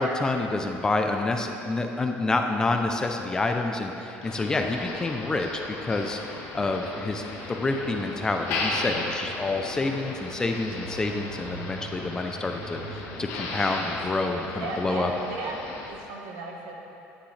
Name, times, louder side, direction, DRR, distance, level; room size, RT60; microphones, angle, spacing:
voice 1, 0.0-6.2 6.5-15.1, left 2 dB, 15° left, 4 dB, 0.4 m, -28 dB
Motor vehicle (road), 4.2-15.9, left 2 dB, 75° left, 1.3 m, -36 dB
voice 2, 14.5-15.6 15.8-16.7, right 3 dB, 75° right, 0 dB, 1.3 m, -35 dB
10.0 x 8.7 x 3.2 m, 2.9 s
cardioid pair, 165°, 5 cm